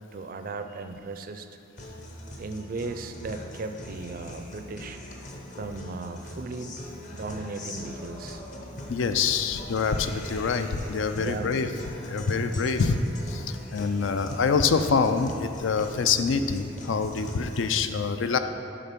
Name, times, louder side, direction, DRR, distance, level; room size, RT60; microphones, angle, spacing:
voice 1, 0.0-1.5 2.4-5.0 5.5-6.8 7.1-8.4 11.2-11.6, right 3 dB, 45° right, 8 dB, 0.4 m, -36 dB
Guitar, 1.8-17.8, left 1 dB, 40° left, 0.8 m, -41 dB
voice 2, 8.9-11.7 12.0-13.0 13.3-18.4, left 5 dB, 70° left, 9 dB, 0.4 m, -25 dB
8.9 x 3.7 x 5.8 m, 2.7 s
head